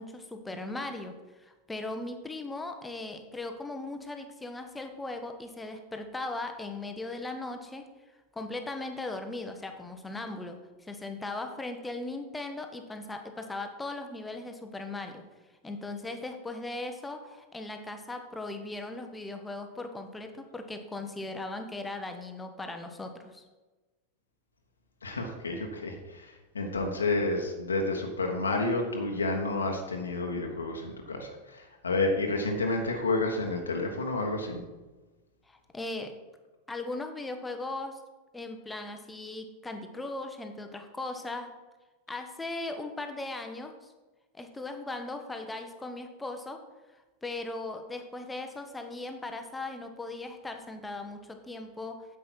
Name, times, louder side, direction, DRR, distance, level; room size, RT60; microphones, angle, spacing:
voice 1, 0.0-7.9 8.3-15.2 15.6-23.4 35.5-36.2 36.7-38.0 38.3-41.5 42.1-43.9 44.3-46.6 47.2-52.1, left 2 dB, 10° left, 6 dB, 1.0 m, -38 dB
voice 2, 25.0-34.6, left 2 dB, 75° left, 2 dB, 1.2 m, -30 dB
9.2 x 7.8 x 4.5 m, 1.2 s
figure-of-eight pair, 90°, 0 cm